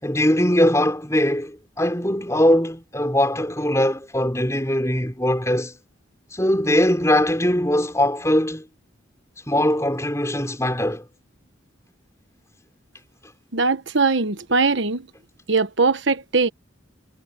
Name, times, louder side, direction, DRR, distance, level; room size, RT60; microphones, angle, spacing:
voice 1, 0.0-5.7 6.3-8.6 9.5-11.0, left 1 dB, 15° left, 5.3 m, -21 dB
voice 2, 13.5-15.1 15.5-16.5, right 4 dB, 65° right, 1.3 m, -20 dB
head